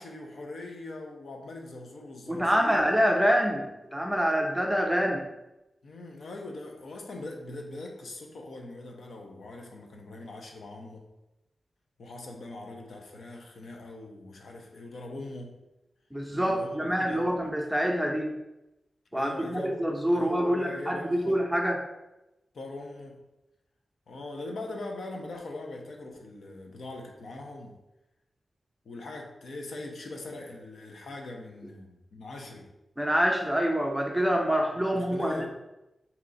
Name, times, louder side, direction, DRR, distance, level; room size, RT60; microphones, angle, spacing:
voice 1, 0.0-2.9 5.8-11.1 12.0-15.6 16.3-17.3 19.1-21.4 22.5-23.2 24.1-27.7 28.8-32.7 34.9-35.5, left 2 dB, 70° left, 2 dB, 0.7 m, -41 dB
voice 2, 2.3-5.3 16.1-18.3 19.1-21.8 33.0-35.5, equal, 5° right, 1 dB, 0.5 m, -26 dB
4.4 x 2.9 x 3.8 m, 0.94 s
wide cardioid pair, 170°, 0 cm